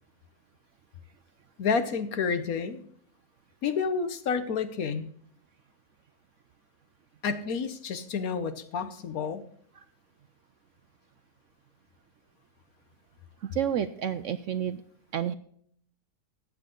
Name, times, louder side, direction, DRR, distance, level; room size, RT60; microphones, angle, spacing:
voice 1, 1.6-2.8 3.6-5.1 7.2-9.4, left 5 dB, 65° left, 11 dB, 1.4 m, -29 dB
voice 2, 13.5-14.8 15.1-15.3, right 9 dB, 65° right, 12 dB, 0.8 m, -29 dB
14.0 x 8.7 x 3.8 m, 0.62 s
omnidirectional pair, 1.7 m